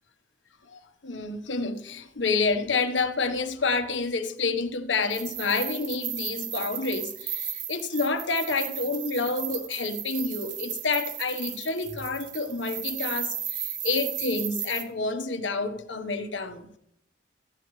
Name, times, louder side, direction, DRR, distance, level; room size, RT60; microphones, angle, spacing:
voice 1, 0.7-16.7, left 3 dB, 85° left, 1.3 m, -29 dB
sound 1, 5.0-14.8, right 10 dB, 70° right, 1.4 m, -35 dB
16.5 x 14.5 x 3.3 m
head